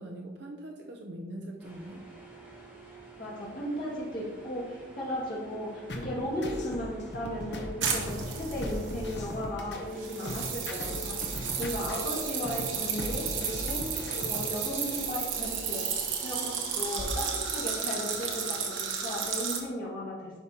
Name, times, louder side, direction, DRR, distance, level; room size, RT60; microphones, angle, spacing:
voice 1, 0.0-2.0, right 1 dB, 60° right, 1 dB, 0.6 m, -42 dB
sound 1, 1.6-18.7, right 4 dB, 5° right, 1.6 m, -49 dB
voice 2, 3.2-11.2 11.6-13.8 14.3-15.8 16.2-20.3, left 1 dB, 45° left, -7 dB, 2.2 m, -36 dB
sound 2, 5.9-14.6, left 1 dB, 60° left, 0.9 m, -38 dB
sound 3, 7.8-9.4 10.0-19.6, right 6 dB, 85° right, 1.1 m, -33 dB
11.0 x 5.0 x 2.9 m, 1.5 s
head